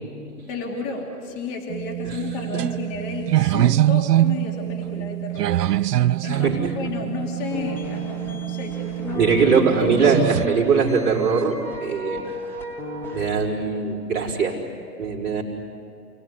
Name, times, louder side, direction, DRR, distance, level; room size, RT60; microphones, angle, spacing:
voice 1, 0.5-9.4 9.7-10.2, left 4 dB, 25° left, 0 dB, 3.0 m, -33 dB
sound 1, 1.7-10.5, right 14 dB, 75° right, 0.5 m, -24 dB
voice 2, 6.2-6.9 9.1-12.2 13.1-14.6 15.0-15.4, right 5 dB, 30° right, -5 dB, 4.7 m, -21 dB
sound 2, 7.5-13.3, equal, 5° left, 1.4 m, -35 dB
29.0 x 19.0 x 9.8 m, 2.6 s
hypercardioid pair, 150°, 48 cm